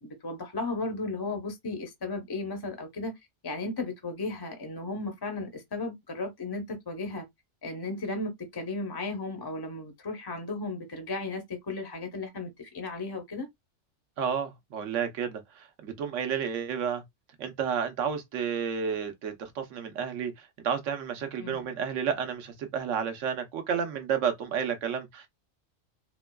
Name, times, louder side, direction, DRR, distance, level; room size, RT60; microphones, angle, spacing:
voice 1, 0.0-7.2 7.6-13.5 21.4-21.7, left 2 dB, 30° left, 0.5 m, -35 dB
voice 2, 14.2-17.0 17.4-25.3, right 7 dB, 85° right, 1.1 m, -31 dB
4.2 x 2.2 x 2.2 m
omnidirectional pair, 1.2 m